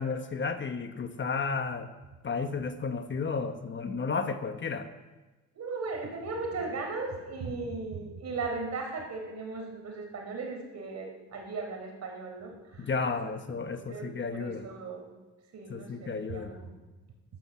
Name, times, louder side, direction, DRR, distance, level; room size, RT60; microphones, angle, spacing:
voice 1, 0.0-1.9 2.2-4.9 12.8-14.6 15.7-16.6, left 4 dB, 40° left, 8 dB, 1.2 m, -33 dB
voice 2, 5.5-13.2 13.5-15.2 15.5-16.7, right 3 dB, 60° right, 2 dB, 4.2 m, -37 dB
12.0 x 12.0 x 7.2 m, 1.2 s
cardioid pair, 90°, 30 cm